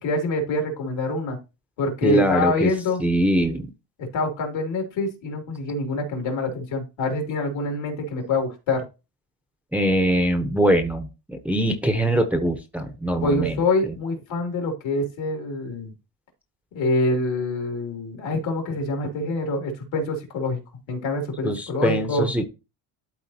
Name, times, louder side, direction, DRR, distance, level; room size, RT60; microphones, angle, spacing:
voice 1, 0.0-1.4 1.8-3.0 4.0-8.8 13.2-15.9 16.7-20.6 20.9-22.3, left 2 dB, 70° left, 3 dB, 2.8 m, -25 dB
voice 2, 2.0-2.7 3.0-3.7 9.7-13.6 21.4-22.5, right 1 dB, 5° right, 6 dB, 0.7 m, -22 dB
12.0 x 4.0 x 2.7 m, 0.28 s
cardioid pair, 125°, 47 cm